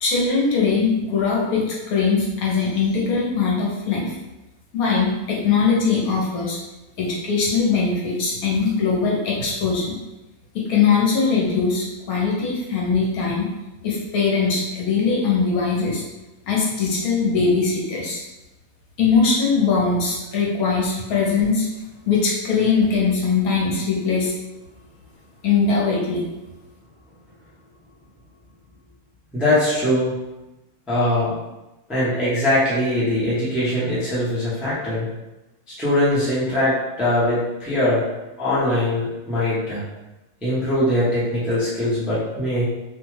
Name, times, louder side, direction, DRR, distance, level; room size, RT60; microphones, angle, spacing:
voice 1, 0.0-4.1 4.7-6.6 7.0-10.0 10.5-13.5 13.8-16.0 16.5-18.2 19.0-21.7 22.1-24.3 25.4-26.2, left 5 dB, 70° left, -4 dB, 1.2 m, -21 dB
voice 2, 29.3-30.1 30.9-31.3 31.9-35.1 35.7-38.0 38.4-39.8 40.4-42.7, left 1 dB, ahead, -10 dB, 0.5 m, -21 dB
2.7 x 2.3 x 3.1 m, 1.0 s
omnidirectional pair, 1.6 m